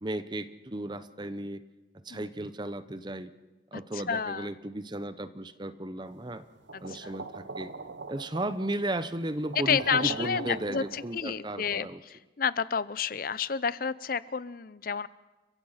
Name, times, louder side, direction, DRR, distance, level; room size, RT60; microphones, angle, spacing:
voice 1, 0.0-1.6 2.0-3.3 3.7-6.4 6.8-7.7 8.1-12.0, right 1 dB, 25° right, 13 dB, 0.8 m, -35 dB
voice 2, 3.9-4.5 6.7-7.1 9.6-15.1, left 6 dB, 50° left, 18 dB, 0.6 m, -30 dB
sound 1, 6.7-11.2, right 3 dB, 80° right, 1.1 m, -41 dB
30.0 x 15.5 x 5.8 m, 1.2 s
head